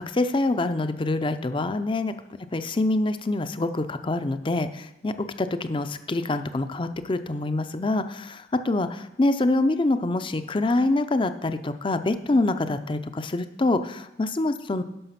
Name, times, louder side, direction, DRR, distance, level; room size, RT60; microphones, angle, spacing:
voice 1, 0.0-2.1 2.5-5.1 5.4-14.8, left 2 dB, 30° left, 10 dB, 0.5 m, -25 dB
11.0 x 6.0 x 5.8 m, 0.93 s
head